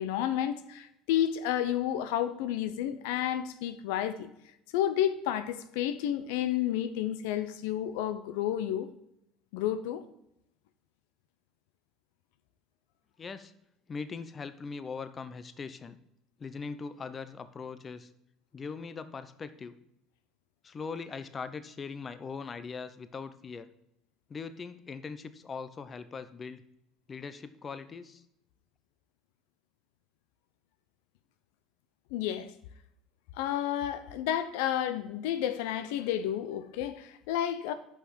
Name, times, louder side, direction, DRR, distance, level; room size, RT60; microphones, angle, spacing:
voice 1, 0.0-4.3 4.7-8.9 9.5-10.0 32.1-32.5 33.3-37.7, left 11 dB, 80° left, 0.6 m, -31 dB
voice 2, 13.2-13.5 13.9-16.0 16.4-18.1 18.5-19.8 20.6-23.7 24.3-26.6 27.1-28.2, left 5 dB, 30° left, 0.6 m, -40 dB
5.8 x 5.7 x 6.3 m
supercardioid pair, 95°, 0 cm